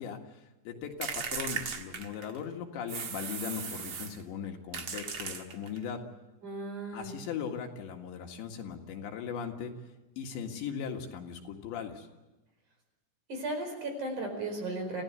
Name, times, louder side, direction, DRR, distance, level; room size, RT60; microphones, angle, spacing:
voice 1, 0.0-6.0 6.9-9.7 10.2-12.1, left 7 dB, 75° left, 3 dB, 4.1 m, -39 dB
sound 1, 1.0-2.4 2.9-4.2 4.7-5.8, right 6 dB, 65° right, 1.3 m, -37 dB
voice 2, 6.4-7.2 13.3-15.0, right 2 dB, 45° right, 4 dB, 5.9 m, -35 dB
27.0 x 16.0 x 8.1 m, 1.1 s
omnidirectional pair, 5.2 m